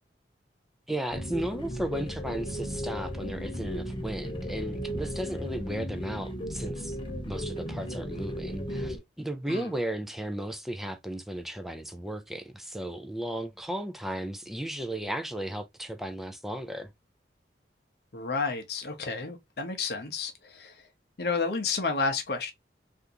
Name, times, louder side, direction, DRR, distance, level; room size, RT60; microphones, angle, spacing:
voice 1, 0.9-7.0 7.2-16.9, right 1 dB, ahead, 0.4 m, -35 dB
sound 1, 1.1-9.0, equal, 30° left, 0.9 m, -35 dB
voice 2, 18.1-20.7 21.2-22.5, left 4 dB, 60° left, 0.7 m, -31 dB
3.5 x 2.5 x 2.7 m
head